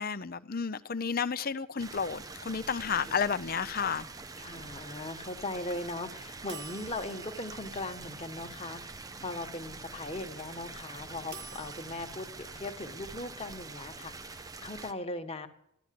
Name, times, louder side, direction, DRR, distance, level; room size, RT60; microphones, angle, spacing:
voice 1, 0.0-4.1, left 6 dB, 45° left, 0.7 m, -32 dB
sound 1, 1.8-14.9, right 3 dB, 15° right, 0.6 m, -45 dB
voice 2, 4.4-8.8 9.2-15.5, left 2 dB, 25° left, 1.4 m, -39 dB
sound 2, 6.5-8.7 11.3-12.2, right 5 dB, 50° right, 1.3 m, -49 dB
14.5 x 12.5 x 7.6 m
head